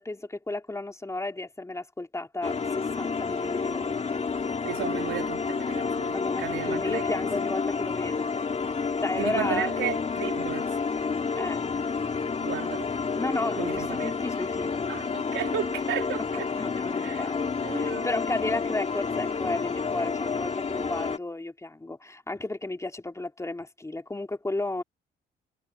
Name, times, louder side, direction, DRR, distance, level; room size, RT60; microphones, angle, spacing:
voice 1, 0.0-4.2 6.1-8.3 9.0-9.7 11.4-11.7 13.2-14.9 16.5-24.8, left 2 dB, 15° left, 4.0 m, -33 dB
sound 1, 2.4-21.2, left 5 dB, 35° left, 2.6 m, -30 dB
voice 2, 4.6-7.0 9.2-10.7 12.4-12.9 13.6-14.1 14.9-16.5 17.0-17.2 17.6-18.1, right 12 dB, 85° right, 3.5 m, -34 dB
cardioid pair, 90°, 20 cm